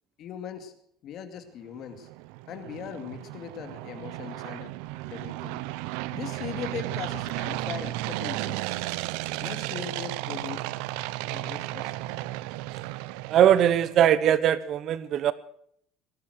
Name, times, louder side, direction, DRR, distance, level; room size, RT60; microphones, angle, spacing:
voice 1, 0.2-0.7 1.0-2.1 2.5-4.7 5.1-5.6 6.1-8.9 9.4-10.6 11.3-11.9, left 8 dB, 50° left, 8 dB, 2.3 m, -39 dB
sound 1, 1.8-14.1, right 18 dB, 85° right, 0.6 m, -34 dB
voice 2, 13.3-15.3, right 10 dB, 45° right, 17 dB, 1.0 m, -21 dB
19.0 x 11.5 x 6.4 m, 0.66 s
cardioid pair, 150°, 0 cm